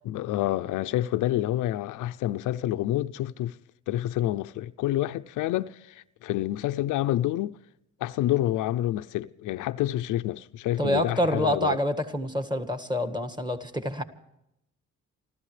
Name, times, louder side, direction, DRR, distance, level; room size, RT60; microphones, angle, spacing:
voice 1, 0.1-3.6 3.9-7.6 8.0-11.8, left 14 dB, 85° left, 0.5 m, -28 dB
voice 2, 10.8-14.0, left 1 dB, 15° right, 1.7 m, -27 dB
29.0 x 13.5 x 3.3 m
cardioid pair, 90°, 30 cm